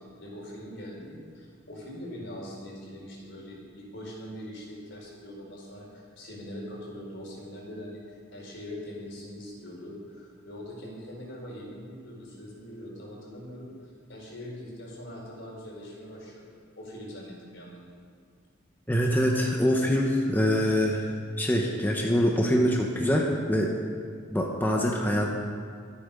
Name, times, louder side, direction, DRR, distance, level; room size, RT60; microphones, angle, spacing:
voice 1, 0.0-17.8, equal, 65° left, -2 dB, 4.8 m, -42 dB
voice 2, 18.9-21.0 21.4-23.8 24.3-25.4, equal, 10° left, -1 dB, 1.1 m, -24 dB
24.0 x 8.7 x 5.5 m, 2.2 s
head